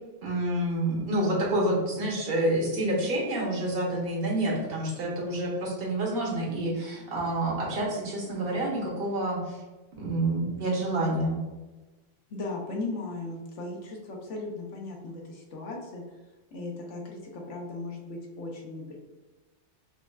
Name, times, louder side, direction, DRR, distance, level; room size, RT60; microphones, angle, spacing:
voice 1, 0.2-9.6 10.0-11.4, right 1 dB, 55° right, -2 dB, 1.0 m, -28 dB
voice 2, 12.3-16.0 16.5-19.0, left 2 dB, 75° left, -1 dB, 1.0 m, -37 dB
5.2 x 2.3 x 2.3 m, 1.2 s
omnidirectional pair, 1.3 m